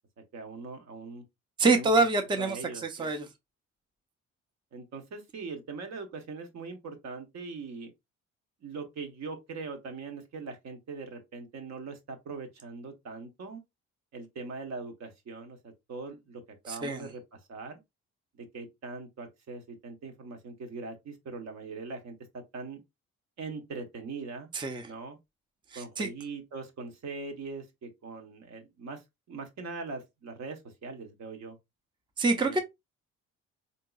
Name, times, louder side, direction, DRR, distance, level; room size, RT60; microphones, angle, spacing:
voice 1, 0.3-1.2 1.7-1.9 2.4-3.1 4.7-7.9 8.6-13.6 14.1-17.2 17.5-17.8 18.4-22.8 23.4-24.5 24.8-25.2 25.7-29.0 29.3-31.6 32.4-32.6, right 4 dB, 60° right, 1.1 m, -41 dB
voice 2, 1.6-2.6 2.8-3.2 16.7-17.0 24.5-24.9 25.7-26.1 32.2-32.6, right 3 dB, 15° right, 0.5 m, -26 dB
3.7 x 2.8 x 2.3 m
cardioid pair, 90°, 30 cm